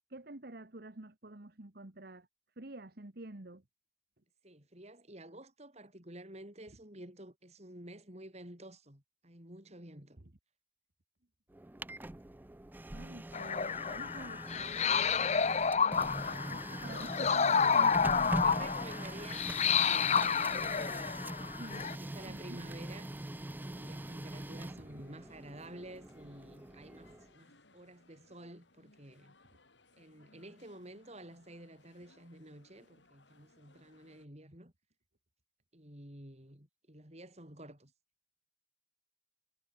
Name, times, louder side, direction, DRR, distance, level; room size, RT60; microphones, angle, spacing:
voice 1, 0.1-2.3 2.6-3.6 10.2-10.3 12.9-18.9 21.6-22.0 22.3-22.6 24.8-25.0, right 2 dB, 55° right, 1.6 m, -49 dB
voice 2, 4.4-10.2 18.2-21.6 21.8-23.1 23.7-29.3 30.0-34.7 35.7-37.9, right 1 dB, 35° right, 7.4 m, -51 dB
Printer, 11.5-27.3, right 1 dB, 10° right, 0.4 m, -43 dB
sound 1, 13.3-21.9, left 6 dB, 40° left, 0.8 m, -30 dB
sound 2, 16.5-34.3, left 3 dB, 80° left, 6.5 m, -65 dB
head